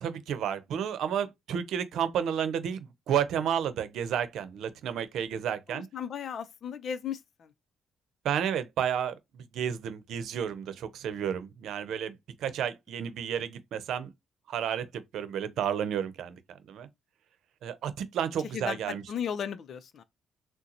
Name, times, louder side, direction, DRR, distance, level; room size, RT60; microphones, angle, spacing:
voice 1, 0.0-5.9 8.2-12.1 12.4-14.1 14.5-14.9 15.1-16.4 16.7-16.9 17.6-19.0, right 8 dB, 75° right, 0.7 m, -31 dB
voice 2, 5.7-7.5 18.5-20.0, left 8 dB, 60° left, 0.6 m, -36 dB
3.9 x 2.1 x 2.8 m
cardioid pair, 90°, 0 cm